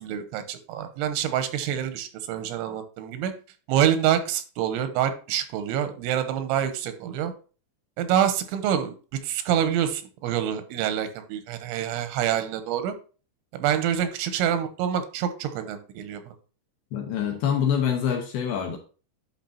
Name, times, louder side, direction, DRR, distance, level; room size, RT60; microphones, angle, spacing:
voice 1, 0.0-3.3 3.7-7.3 8.0-9.0 9.2-12.9 13.5-16.3, right 10 dB, 90° right, 9 dB, 3.1 m, -26 dB
voice 2, 16.9-18.8, left 8 dB, 75° left, 3 dB, 2.5 m, -25 dB
10.5 x 5.9 x 2.7 m, 0.37 s
omnidirectional pair, 5.4 m